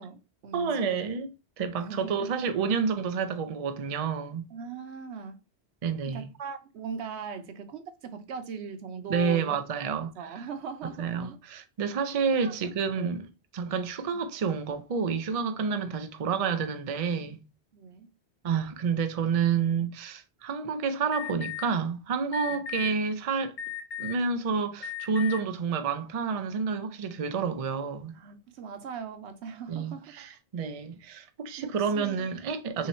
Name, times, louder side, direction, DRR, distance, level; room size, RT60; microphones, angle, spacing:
voice 1, 0.0-1.0 1.8-2.1 4.5-5.4 6.1-9.6 10.2-11.4 12.4-12.5 13.0-13.2 15.7-15.8 17.7-18.1 22.5-22.6 28.1-30.2 31.6-32.3 32.8-32.9, right 5 dB, 80° right, 0.9 m, -40 dB
voice 2, 0.5-4.4 5.8-6.3 9.1-10.1 10.4-10.5 11.0-13.3 13.5-17.4 18.4-23.5 24.0-28.1 29.7-32.9, right 6 dB, 45° right, 0.5 m, -29 dB
Alarm, 21.1-21.6 22.3-22.9 23.6-24.2 24.8-25.4, left 10 dB, 50° left, 0.8 m, -36 dB
3.2 x 2.8 x 4.1 m
omnidirectional pair, 1.1 m